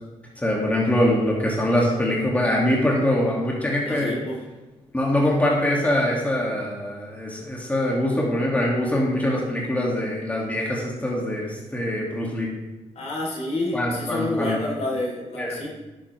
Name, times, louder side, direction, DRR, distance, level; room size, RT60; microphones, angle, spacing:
voice 1, 0.4-4.1 4.9-12.5 13.7-14.6 15.4-15.6, left 1 dB, 10° left, -3 dB, 2.4 m, -23 dB
voice 2, 3.9-4.4 13.0-15.7, left 2 dB, 60° left, -3 dB, 3.7 m, -28 dB
10.5 x 8.6 x 3.4 m, 1.1 s
cardioid pair, 75°, 12 cm